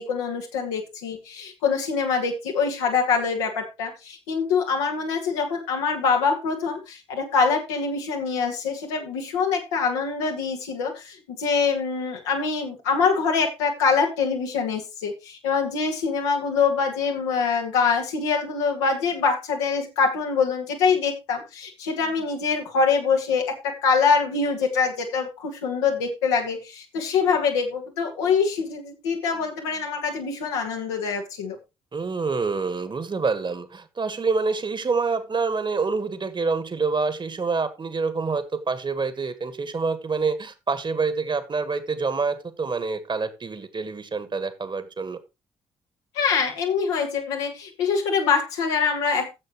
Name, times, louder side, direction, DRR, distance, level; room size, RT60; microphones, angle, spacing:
voice 1, 0.0-31.6 46.2-49.3, left 5 dB, 75° left, 2 dB, 1.8 m, -24 dB
voice 2, 31.9-45.2, right 4 dB, 30° right, 12 dB, 1.5 m, -27 dB
13.5 x 7.6 x 3.1 m, 0.25 s
figure-of-eight pair, 40°, 15 cm